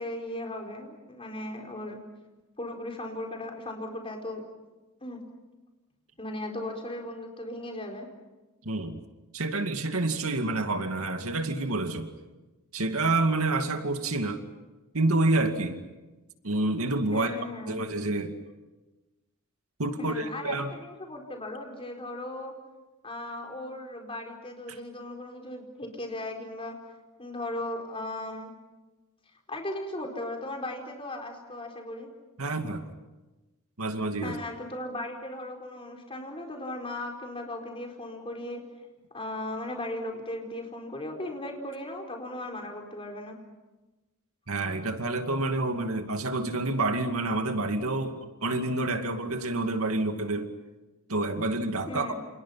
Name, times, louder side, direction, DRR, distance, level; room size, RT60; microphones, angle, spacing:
voice 1, 0.0-2.0 2.6-4.4 5.0-5.2 6.2-8.1 17.1-17.8 20.0-22.6 23.0-26.8 27.2-28.5 29.5-32.1 34.2-38.6 39.1-43.4 51.9-52.2, left 1 dB, 25° left, 2 dB, 4.5 m, -37 dB
voice 2, 8.6-9.0 9.3-12.1 12.7-14.4 14.9-15.8 16.4-17.4 17.7-18.4 19.8-20.7 32.4-32.9 33.8-34.4 44.5-50.5 51.1-52.1, right 2 dB, 80° right, 6 dB, 2.3 m, -28 dB
29.0 x 28.0 x 5.8 m, 1.1 s
head